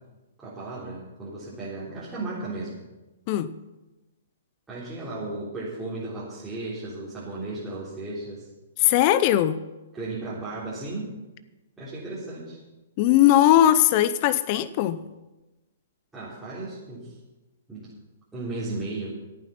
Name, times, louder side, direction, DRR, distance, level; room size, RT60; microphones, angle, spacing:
voice 1, 0.4-2.8 4.7-8.5 9.9-11.1 11.8-12.6 16.1-17.2 17.7-17.9 18.3-19.2, right 2 dB, 10° right, -10 dB, 3.9 m, -35 dB
voice 2, 8.8-9.6 13.0-15.0, left 12 dB, 35° left, 15 dB, 0.6 m, -19 dB
15.0 x 9.1 x 5.8 m, 1.1 s
hypercardioid pair, 150°, 0 cm